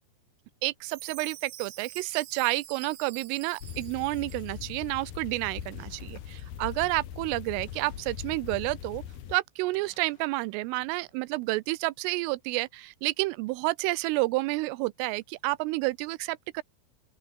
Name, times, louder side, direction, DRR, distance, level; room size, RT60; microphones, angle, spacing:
voice 1, 0.6-9.0 9.3-16.6, right 22 dB, 90° right, 3.3 m, -30 dB
Chime, 0.9-4.9, right 14 dB, 70° right, 2.4 m, -46 dB
sound 1, 3.6-9.4, left 10 dB, 55° left, 3.6 m, -41 dB
Boom, 5.7-7.2 7.6-9.3 9.7-12.0 12.3-12.4, left 4 dB, 25° left, 2.7 m, -62 dB
open air
omnidirectional pair, 5.8 m